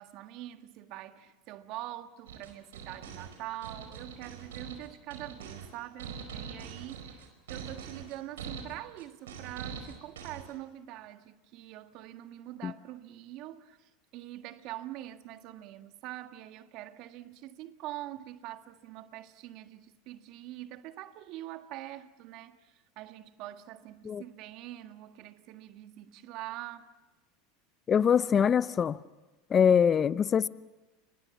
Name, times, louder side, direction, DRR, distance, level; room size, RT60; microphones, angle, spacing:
voice 1, 0.0-26.9, right 14 dB, 55° right, 1.7 m, -44 dB
sound 1, 2.3-10.5, right 6 dB, 85° right, 4.9 m, -43 dB
voice 2, 27.9-29.0 29.5-30.5, left 7 dB, 30° left, 0.8 m, -23 dB
29.0 x 25.0 x 7.3 m
hypercardioid pair, 100°, 0 cm